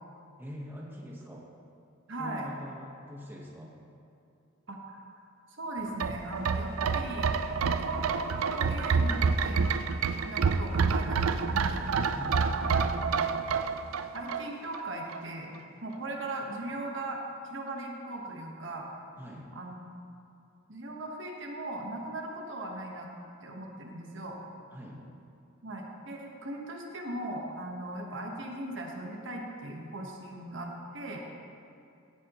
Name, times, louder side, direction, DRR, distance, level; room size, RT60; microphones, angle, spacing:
voice 1, 0.4-1.4 2.2-3.7 12.1-12.4 19.2-19.5 24.7-25.0, equal, 10° right, -3 dB, 1.2 m, -43 dB
voice 2, 2.1-2.5 4.7-5.0 5.5-7.3 7.6-9.8 10.1-11.8 12.5-13.3 14.1-15.5 15.8-17.2 17.5-18.9 19.5-19.9 20.7-23.1 23.4-24.4 25.6-31.2, right 1 dB, 60° right, 0 dB, 1.3 m, -38 dB
sound 1, 5.9-14.8 15.1-15.2, right 5 dB, 85° right, 0.4 m, -28 dB
16.5 x 9.4 x 3.0 m, 2.6 s
head